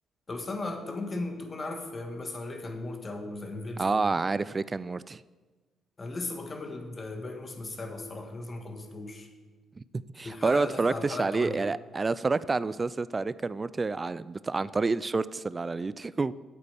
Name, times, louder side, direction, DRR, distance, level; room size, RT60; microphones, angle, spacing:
voice 1, 0.3-4.1 6.0-9.3 10.2-11.6, left 2 dB, 30° left, 5 dB, 1.6 m, -37 dB
voice 2, 3.8-5.2 9.8-16.3, right 3 dB, 25° right, 17 dB, 0.3 m, -29 dB
8.3 x 8.2 x 7.0 m, 1.3 s
cardioid pair, 90°, 0 cm